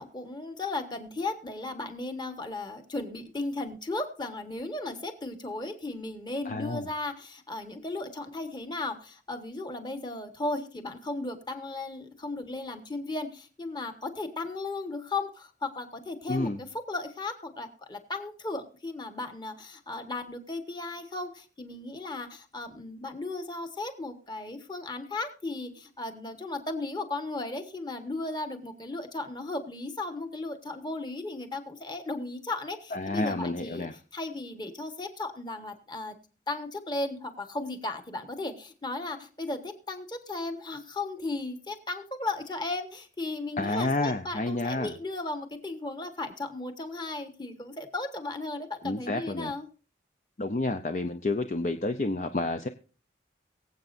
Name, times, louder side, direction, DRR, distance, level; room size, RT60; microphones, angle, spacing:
voice 1, 0.0-33.9 34.1-36.1 36.5-49.7, left 2 dB, 25° left, 7 dB, 1.3 m, -35 dB
voice 2, 6.5-6.9 16.3-16.6 32.9-33.9 43.6-44.9 48.8-49.5 50.4-52.7, left 2 dB, 40° left, 8 dB, 0.5 m, -29 dB
23.0 x 8.0 x 2.6 m, 0.37 s
head